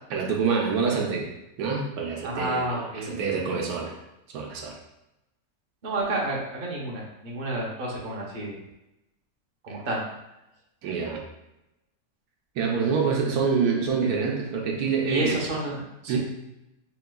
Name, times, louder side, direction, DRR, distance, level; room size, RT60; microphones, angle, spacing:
voice 1, 0.1-1.3 1.6-3.9 4.3-4.8 9.7-9.8 10.8-11.2 12.6-15.4 16.1-16.2, right 5 dB, 80° right, 0 dB, 1.1 m, -26 dB
voice 2, 2.2-3.1 5.8-8.6 9.6-10.0 15.1-15.8 16.0-16.2, right 2 dB, 40° right, -3 dB, 0.8 m, -30 dB
5.0 x 3.0 x 2.2 m, 0.91 s
omnidirectional pair, 1.6 m